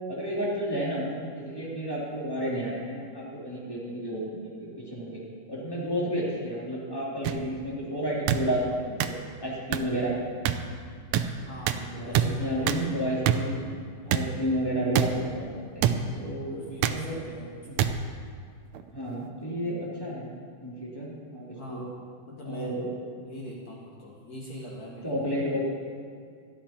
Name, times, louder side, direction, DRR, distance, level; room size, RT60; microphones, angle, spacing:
voice 1, 0.1-5.2 5.5-9.1 9.4-10.1 11.9-13.6 14.0-17.2 17.7-17.8 18.9-20.3 20.6-21.9 22.4-22.9 25.0-25.6, equal, 10° left, -5 dB, 2.1 m, -31 dB
sound 1, 7.2-7.3 8.3-8.4 9.0-9.1 9.7-9.8 10.5-10.6 11.1-11.2 11.7-11.8 12.1-12.3 12.7-12.8 13.3-13.4 14.1-14.2 14.9-15.1 15.8-16.0 16.8-17.0 17.8-17.9 18.7-18.9, right 11 dB, 85° right, 1.5 m, -24 dB
voice 2, 11.5-13.5 16.4-17.9 21.5-22.8 23.2-25.3, equal, 70° left, -2 dB, 0.8 m, -43 dB
13.5 x 11.5 x 4.3 m, 2.1 s
omnidirectional pair, 3.7 m